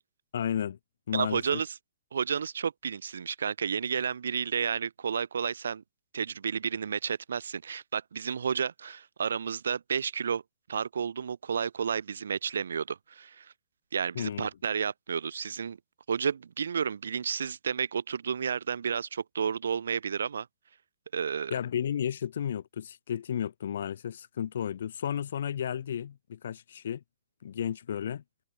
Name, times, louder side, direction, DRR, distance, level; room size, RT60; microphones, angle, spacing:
voice 1, 0.3-0.8 1.1-1.6 14.1-14.5 21.5-27.0 27.4-28.2, left 9 dB, 60° left, 1.1 m, -33 dB
voice 2, 1.1-1.7 2.1-5.8 6.1-10.4 10.7-13.5 13.9-15.8 16.1-20.5 21.1-21.5, right 7 dB, 85° right, 2.3 m, -31 dB
open air
hypercardioid pair, 170°, 0 cm